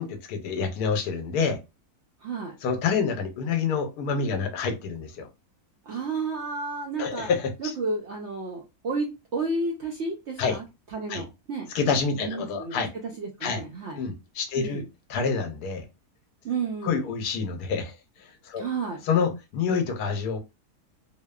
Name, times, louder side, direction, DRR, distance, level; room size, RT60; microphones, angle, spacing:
voice 1, 0.0-1.6 2.6-5.3 7.0-7.7 10.4-10.6 11.1-11.2 11.7-12.9 13.4-13.6 14.0-14.8 15.1-15.9 16.8-17.9 18.2-18.7 19.0-20.4, left 5 dB, 80° left, 1.1 m, -27 dB
voice 2, 2.2-2.5 5.9-7.3 7.6-11.7 12.2-12.8 13.2-14.0 14.6-14.9 16.4-17.1 18.6-19.0, right 3 dB, 70° right, 0.7 m, -32 dB
2.9 x 2.0 x 2.2 m
omnidirectional pair, 1.7 m